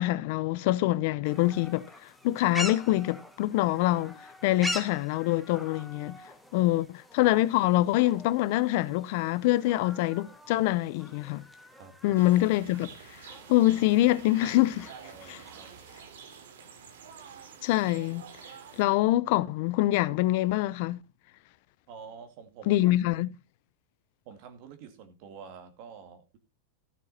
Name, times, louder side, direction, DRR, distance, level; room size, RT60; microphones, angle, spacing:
voice 1, 0.0-1.9 2.2-4.2 4.4-6.2 6.5-11.4 12.0-12.9 13.5-14.9 15.3-15.4 17.6-18.3 18.8-21.0 22.7-23.3, left 16 dB, 50° left, 0.6 m, -25 dB
sound 1, 1.2-16.0, left 1 dB, ahead, 1.3 m, -43 dB
voice 2, 11.8-12.2 15.0-15.7 21.9-22.9 24.3-26.4, right 6 dB, 45° right, 2.4 m, -48 dB
sound 2, 12.2-18.8, right 7 dB, 90° right, 2.8 m, -48 dB
14.5 x 6.6 x 4.3 m
supercardioid pair, 160°, 0 cm